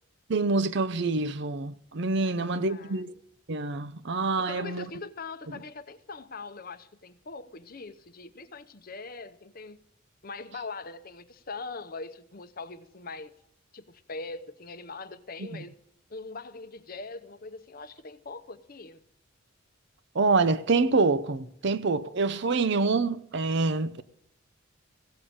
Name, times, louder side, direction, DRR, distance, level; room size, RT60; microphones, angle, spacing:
voice 1, 0.3-3.1 3.5-4.9 15.5-15.6 20.1-24.0, right 3 dB, 55° right, 0.6 m, -26 dB
voice 2, 2.2-3.0 4.5-9.8 10.2-13.3 13.7-15.8 16.1-19.0, left 3 dB, 45° left, 0.8 m, -42 dB
16.0 x 6.8 x 8.6 m
head